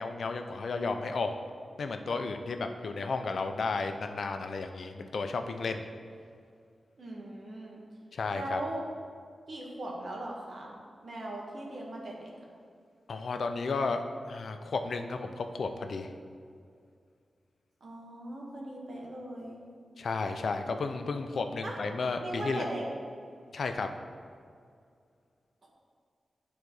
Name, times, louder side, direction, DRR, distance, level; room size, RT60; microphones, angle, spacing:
voice 1, 0.0-1.4 1.8-5.9 8.1-8.6 13.1-16.1 20.0-22.6 23.5-23.9, left 4 dB, 75° left, 6 dB, 0.5 m, -33 dB
voice 2, 7.0-7.8 8.3-8.8 9.5-10.7 11.0-12.3 17.8-19.6 21.6-21.7 22.2-22.8 25.6-25.7, right 1 dB, 65° right, -2 dB, 1.6 m, -39 dB
9.8 x 4.0 x 4.8 m, 2.2 s
wide cardioid pair, 85°, 0 cm